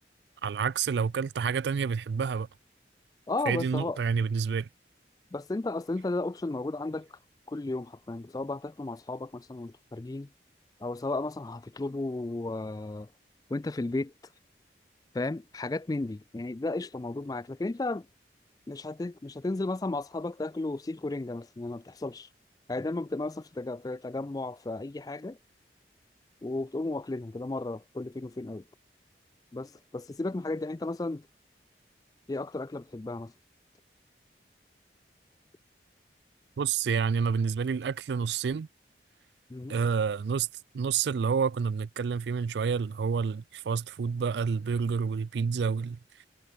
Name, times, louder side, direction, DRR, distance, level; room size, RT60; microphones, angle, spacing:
voice 1, 0.4-2.5 3.5-4.7 36.6-38.7 39.7-40.5 40.7-46.0, right 6 dB, 75° right, 0.4 m, -28 dB
voice 2, 3.3-4.0 5.3-7.2 7.5-10.3 10.8-13.1 13.5-14.1 15.1-18.1 18.7-22.3 22.7-25.4 26.4-28.6 29.5-31.3 32.3-33.3 39.5-39.8, left 2 dB, 20° left, 0.3 m, -34 dB
head